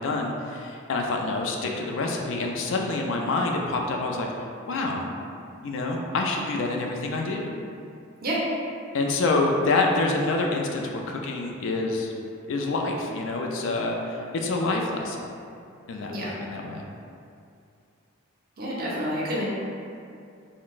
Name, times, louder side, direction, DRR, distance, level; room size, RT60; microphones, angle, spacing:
voice 1, 0.0-4.3 4.7-5.1 5.6-7.5 8.9-12.1 12.5-15.2 15.9-16.8, left 2 dB, 65° left, 1 dB, 0.3 m, -27 dB
voice 2, 18.6-19.4, equal, 45° right, -6 dB, 0.6 m, -28 dB
3.9 x 2.0 x 2.4 m, 2.4 s
head